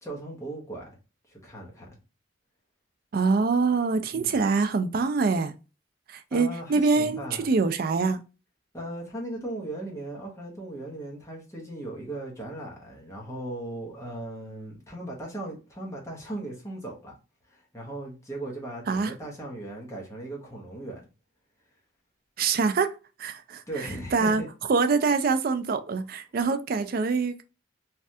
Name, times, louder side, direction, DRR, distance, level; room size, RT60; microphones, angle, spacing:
voice 1, 0.0-0.8 1.3-1.9 4.1-4.4 6.3-7.5 8.7-17.1 17.5-21.0 23.7-24.5, right 1 dB, 15° left, 0.8 m, -37 dB
voice 2, 3.1-5.5 6.1-8.2 18.9-19.1 22.4-24.4 24.7-27.4, right 4 dB, 45° right, 0.3 m, -25 dB
3.2 x 2.3 x 2.6 m
head